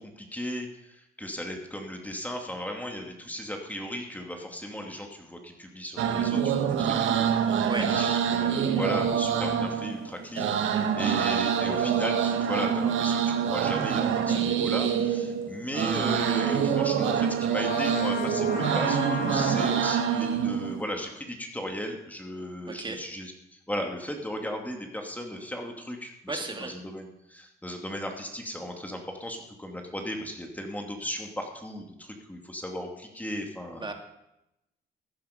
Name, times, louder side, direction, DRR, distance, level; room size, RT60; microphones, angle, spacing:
voice 1, 0.0-33.8, equal, 10° left, 2 dB, 2.5 m, -36 dB
sound 1, 6.0-20.8, right 8 dB, 80° right, 1.4 m, -26 dB
Trumpet, 17.6-20.2, left 7 dB, 55° left, 0.9 m, -35 dB
voice 2, 22.7-23.0 26.3-26.7 33.8-33.9, right 3 dB, 25° right, 3 dB, 2.5 m, -34 dB
15.0 x 10.0 x 5.2 m, 0.87 s
cardioid pair, 90°, 20 cm